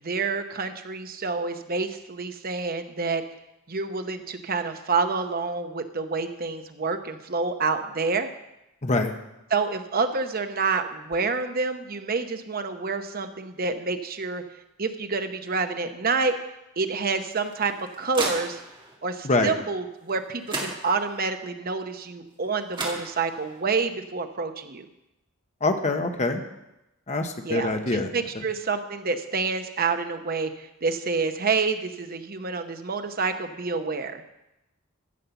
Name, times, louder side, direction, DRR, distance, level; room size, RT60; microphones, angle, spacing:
voice 1, 0.0-3.2 3.7-8.3 9.5-14.4 14.8-16.3 16.8-18.6 19.0-24.9 27.4-34.2, right 4 dB, 45° right, 7 dB, 0.9 m, -28 dB
voice 2, 8.8-9.1 19.2-19.5 25.6-26.4 27.1-28.1, left 2 dB, 35° left, 6 dB, 1.1 m, -24 dB
sound 1, 17.3-18.9 20.1-20.2 20.5-21.3 22.4-22.5 22.7-23.6, right 2 dB, 25° right, 2.0 m, -34 dB
14.5 x 5.6 x 7.0 m, 0.93 s
head